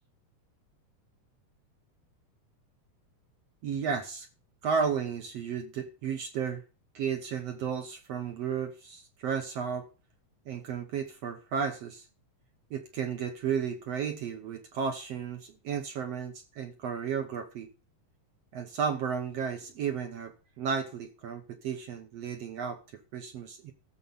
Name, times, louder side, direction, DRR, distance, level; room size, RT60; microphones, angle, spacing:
voice 1, 3.6-4.3 4.6-6.6 6.9-9.9 10.4-12.1 12.7-17.7 18.5-23.7, right 6 dB, 65° right, 1.7 m, -33 dB
14.5 x 7.0 x 5.5 m
omnidirectional pair, 3.9 m